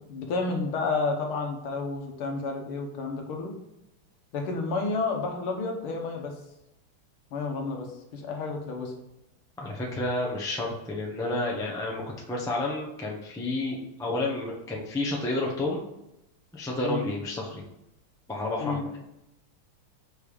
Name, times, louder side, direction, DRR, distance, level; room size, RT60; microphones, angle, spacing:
voice 1, 0.1-3.5 4.3-6.3 7.3-8.9 16.8-17.1 18.6-18.8, left 3 dB, 75° left, 3 dB, 1.9 m, -30 dB
voice 2, 9.6-15.9 16.5-17.6 18.3-19.0, left 2 dB, 5° left, -2 dB, 0.3 m, -30 dB
5.2 x 4.6 x 4.9 m, 0.88 s
omnidirectional pair, 2.4 m